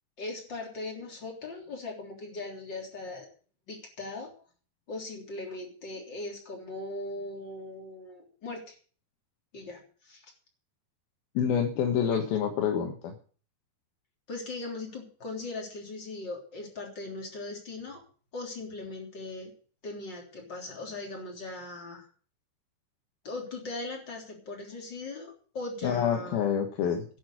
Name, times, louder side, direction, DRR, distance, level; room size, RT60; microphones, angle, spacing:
voice 1, 0.2-3.3 3.7-4.4 4.9-8.8 9.5-10.3 12.1-12.2 14.3-18.0 18.3-19.5 19.8-22.1 23.2-26.4 26.8-26.9, left 2 dB, 25° left, 0 dB, 3.5 m, -39 dB
voice 2, 11.3-13.1 25.8-27.1, left 8 dB, 65° left, 2 dB, 2.9 m, -27 dB
11.5 x 8.0 x 9.2 m, 0.41 s
omnidirectional pair, 5.4 m